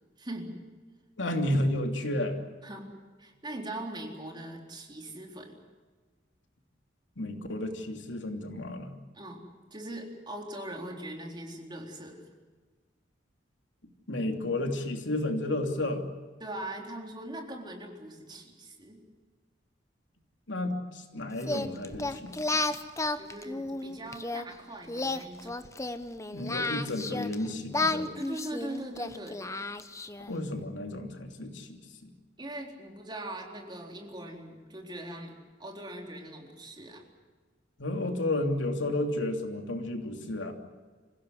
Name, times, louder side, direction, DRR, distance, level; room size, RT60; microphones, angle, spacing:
voice 1, 0.2-0.5 2.6-2.9 3.2-5.6 9.1-9.4 9.7-12.2 16.4-19.0 23.1-25.5 28.1-29.4 32.4-35.3 35.6-37.0, right 1 dB, 25° right, 1 dB, 4.0 m, -41 dB
voice 2, 1.2-2.4 7.2-8.9 14.1-16.1 20.5-20.8 21.1-22.6 26.3-28.1 30.3-31.7 37.8-40.5, left 1 dB, 90° left, 4 dB, 3.0 m, -32 dB
Singing, 21.4-24.4 24.9-27.4 27.7-30.3, left 2 dB, 15° left, 1.0 m, -32 dB
26.5 x 16.0 x 9.8 m, 1.4 s
head